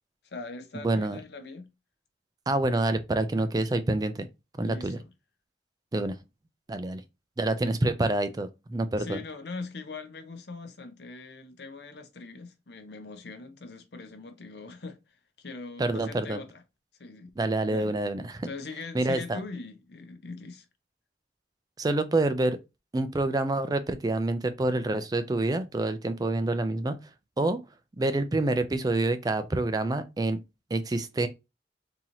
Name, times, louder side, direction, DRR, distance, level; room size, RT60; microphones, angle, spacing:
voice 1, 0.2-1.7 4.6-5.0 9.0-16.6 17.0-17.3 17.7-17.9 18.4-20.7, left 3 dB, 65° left, 0.6 m, -41 dB
voice 2, 0.8-1.2 2.5-4.2 4.6-5.0 5.9-6.2 6.7-7.0 7.4-9.2 15.8-16.4 17.4-18.5 18.9-19.4 21.8-22.6 22.9-27.0 27.4-27.6 28.0-30.4 30.7-31.3, right 2 dB, 20° right, 0.4 m, -27 dB
3.9 x 2.8 x 2.8 m
head